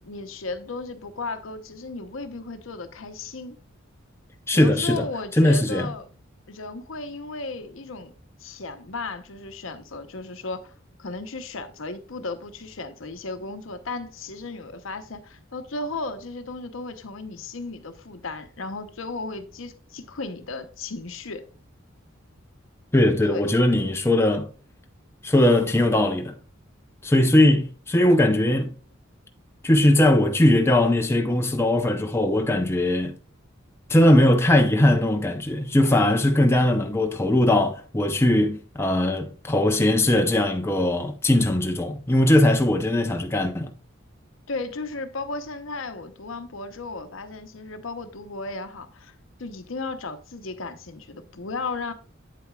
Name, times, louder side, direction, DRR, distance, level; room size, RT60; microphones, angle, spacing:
voice 1, 0.0-3.6 4.5-6.1 6.5-8.1 8.4-10.7 11.0-21.5 23.2-23.6 27.4-27.6 44.5-49.1 49.4-51.9, left 3 dB, 75° left, 0.8 m, -35 dB
voice 2, 4.5-5.1 5.4-5.9 22.9-24.5 25.2-26.3 27.0-28.7 29.6-33.1 33.9-43.7, left 1 dB, 10° left, 0.6 m, -20 dB
8.4 x 8.0 x 2.3 m
head